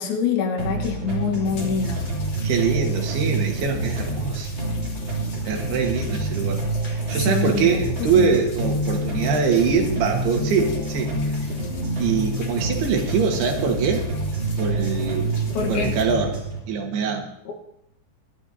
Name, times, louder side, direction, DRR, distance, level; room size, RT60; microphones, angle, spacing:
voice 1, 0.0-2.0 7.2-8.3 15.5-16.0 17.5-17.6, left 6 dB, 75° left, 3 dB, 3.3 m, -25 dB
sound 1, 0.6-16.6, right 2 dB, 30° right, 3.7 m, -27 dB
sound 2, 1.4-16.0, left 3 dB, 50° left, 2.3 m, -39 dB
voice 2, 2.4-4.5 5.5-11.1 12.0-14.1 14.6-15.3 15.7-17.3, right 5 dB, 85° right, 3 dB, 3.6 m, -23 dB
21.5 x 13.0 x 2.8 m, 0.78 s
omnidirectional pair, 4.5 m